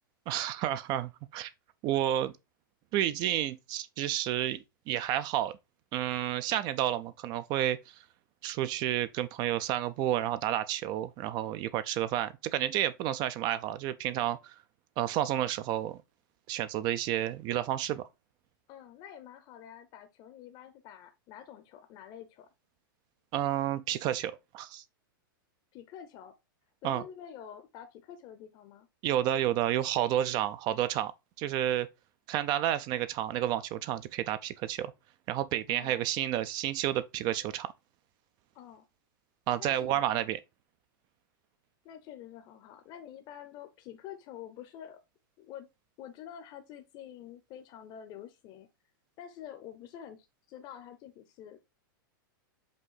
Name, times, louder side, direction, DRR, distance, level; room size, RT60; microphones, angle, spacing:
voice 1, 0.3-1.5 1.8-2.3 2.9-5.6 5.9-8.0 8.4-14.5 15.0-16.0 16.5-18.1 23.3-24.8 26.8-27.0 29.0-31.1 31.4-31.9 32.3-34.9 35.3-37.7 39.5-40.4, right 12 dB, 35° right, 0.4 m, -30 dB
voice 2, 18.7-22.5 25.7-26.3 26.8-28.9 35.7-36.1 38.5-38.8 39.6-40.3 41.8-45.0 45.4-45.7 46.0-48.7 49.2-51.6, left 10 dB, 40° left, 0.7 m, -48 dB
5.2 x 2.6 x 3.9 m
hypercardioid pair, 125°, 12 cm